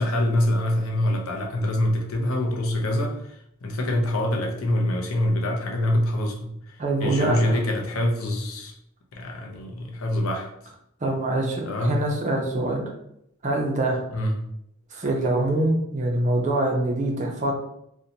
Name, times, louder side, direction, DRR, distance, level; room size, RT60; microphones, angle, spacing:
voice 1, 0.0-6.8 7.0-8.7 9.1-10.5 11.6-12.1 14.1-14.5, left 1 dB, 85° left, 1 dB, 0.5 m, -25 dB
voice 2, 6.8-7.4 11.0-12.8 13.4-14.0 14.9-17.5, right 2 dB, 35° right, 0 dB, 0.5 m, -24 dB
2.5 x 2.1 x 2.8 m, 0.76 s
head